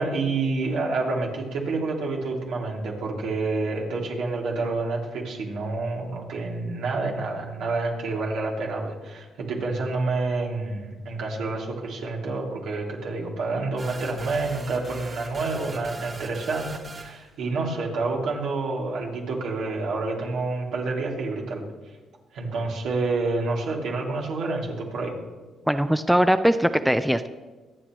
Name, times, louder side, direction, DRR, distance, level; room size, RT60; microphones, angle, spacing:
voice 1, 0.0-21.6 22.3-25.1, right 3 dB, 80° right, -2 dB, 2.8 m, -28 dB
sound 1, 13.8-17.3, right 2 dB, 40° right, 1.8 m, -40 dB
voice 2, 25.7-27.3, equal, 5° right, 10 dB, 0.5 m, -21 dB
24.5 x 8.6 x 3.1 m, 1.3 s
cardioid pair, 90°, 0 cm